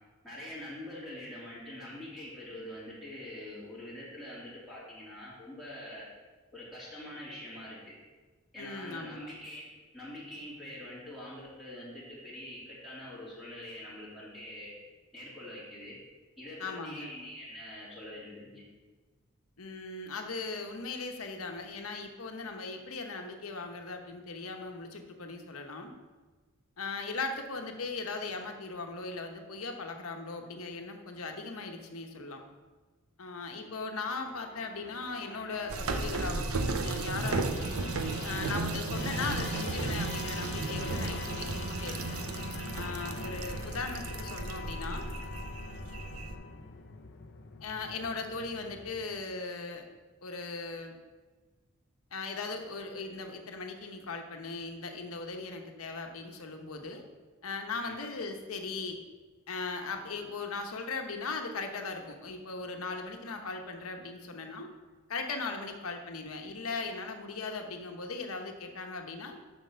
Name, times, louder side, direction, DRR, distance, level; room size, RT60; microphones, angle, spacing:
voice 1, 0.2-6.1 6.5-7.9 8.5-14.7 15.1-16.0 16.4-18.6 57.8-57.9, left 1 dB, ahead, -9 dB, 2.8 m, -44 dB
voice 2, 8.6-9.3 16.6-17.1 19.6-25.9 26.8-32.4 33.2-37.7 38.2-42.2 42.7-45.2 47.6-49.8 50.2-50.9 52.1-57.0 57.4-59.0 59.5-64.7 65.1-69.4, left 3 dB, 85° left, 4 dB, 1.1 m, -38 dB
Musical instrument, 34.0-49.3, left 4 dB, 55° left, 0.7 m, -43 dB
sound 1, 35.7-46.4, right 3 dB, 85° right, 0.7 m, -35 dB
7.5 x 6.4 x 5.7 m, 1.3 s
head